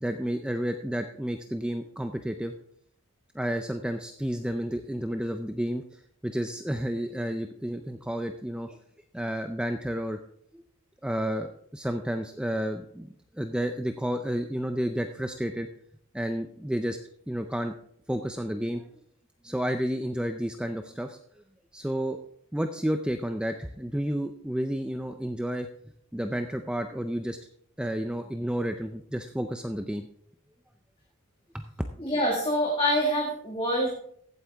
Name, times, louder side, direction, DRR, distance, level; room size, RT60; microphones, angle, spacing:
voice 1, 0.0-2.5 3.3-8.8 9.1-10.2 10.5-10.6 11.0-13.1 13.3-15.7 16.1-17.0 17.3-17.7 18.1-18.9 19.4-21.2 21.7-22.2 22.5-25.7 26.1-27.4 27.8-30.1 31.5-31.6, equal, 5° right, 6 dB, 0.4 m, -31 dB
voice 2, 32.0-33.9, equal, 25° left, -2 dB, 1.8 m, -25 dB
15.0 x 8.3 x 3.5 m, 0.65 s
head